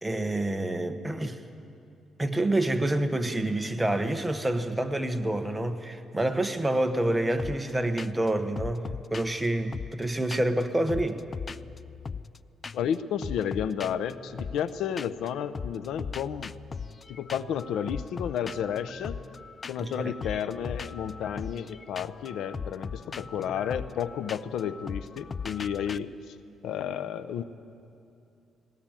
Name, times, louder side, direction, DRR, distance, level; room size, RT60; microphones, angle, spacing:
voice 1, 0.0-1.4 2.2-11.2 19.8-20.1, right 1 dB, 10° right, 1.2 m, -28 dB
sound 1, 7.4-7.7 8.0-8.3 8.6-10.6 10.9-12.4 12.6-13.0 13.2-15.3 15.5-26.0, left 5 dB, 35° left, 0.4 m, -39 dB
voice 2, 12.7-16.5 17.1-19.2 19.7-26.3 26.6-27.4, left 8 dB, 80° left, 0.7 m, -32 dB
20.0 x 18.0 x 9.1 m
cardioid pair, 100°, 0 cm